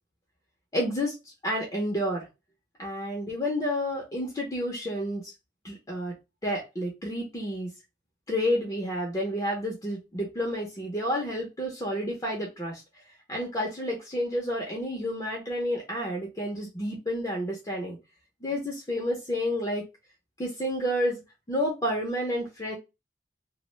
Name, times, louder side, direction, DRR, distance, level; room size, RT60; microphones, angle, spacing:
voice 1, 0.7-1.1 1.4-2.3 2.8-5.3 5.6-6.1 6.4-7.7 8.3-12.8 13.3-18.0 18.4-19.8 20.4-21.2 21.5-22.8, equal, 20° left, -1 dB, 0.5 m, -30 dB
2.1 x 2.0 x 3.0 m, 0.25 s
head